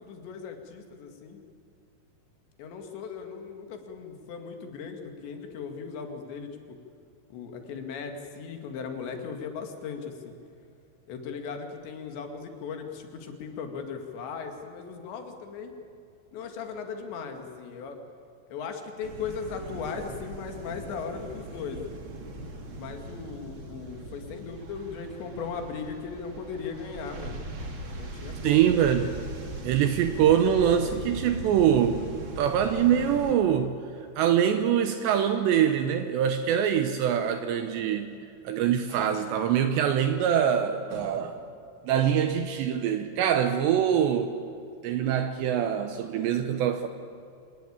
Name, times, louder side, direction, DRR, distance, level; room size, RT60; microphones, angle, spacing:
voice 1, 0.0-1.4 2.6-6.8 7.3-10.3 11.1-15.7 16.3-18.0 18.5-21.8 22.8-27.4 27.9-28.7, left 5 dB, 65° left, 4 dB, 4.2 m, -38 dB
sound 1, 19.0-33.3, right 2 dB, 40° right, 1.9 m, -40 dB
voice 2, 28.4-29.1 29.6-32.1 32.4-33.8 34.2-38.1 38.4-41.4 41.8-44.3 44.8-46.9, right 9 dB, 75° right, 8 dB, 2.7 m, -24 dB
Motor vehicle (road), 31.9-32.6 32.9-33.0 33.5-34.4 34.9-35.0 35.5-35.6 37.9-38.3 38.9-39.6 40.3-40.5 40.9-41.7 42.8-42.9, equal, 20° right, 6.0 m, -49 dB
26.0 x 19.5 x 8.8 m, 2.6 s
omnidirectional pair, 5.8 m